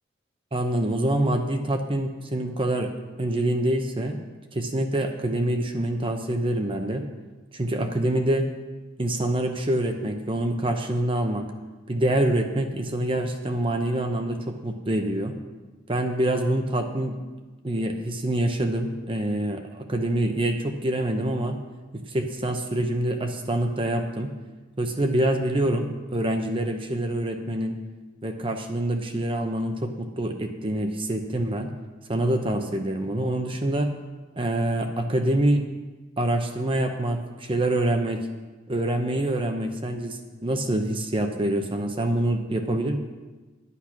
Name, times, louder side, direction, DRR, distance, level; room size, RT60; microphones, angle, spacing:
voice 1, 0.5-2.9 3.2-4.2 4.5-7.1 7.5-8.5 9.0-11.4 11.9-15.4 15.9-17.2 17.6-21.6 22.1-24.3 24.8-27.8 28.2-31.7 32.1-33.9 34.4-35.6 36.2-38.3 38.7-43.0, right 1 dB, 30° right, 5 dB, 0.7 m, -26 dB
10.0 x 8.4 x 6.0 m, 1.2 s
head